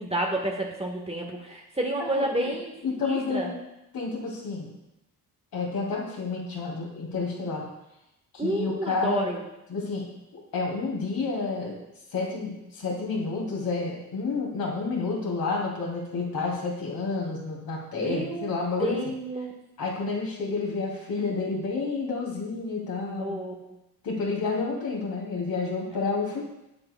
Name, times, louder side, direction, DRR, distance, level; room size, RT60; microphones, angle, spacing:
voice 1, 0.0-3.5 8.4-9.4 18.0-18.5 18.8-19.5 23.2-23.7, right 1 dB, 15° right, 0 dB, 1.4 m, -30 dB
voice 2, 2.0-2.5 2.8-3.5 3.9-4.7 5.5-7.7 8.3-9.3 9.7-11.8 12.1-19.0 19.8-23.4 24.0-26.4, left 4 dB, 60° left, -2 dB, 2.9 m, -30 dB
8.7 x 7.6 x 2.3 m, 0.89 s
hypercardioid pair, 50°, 41 cm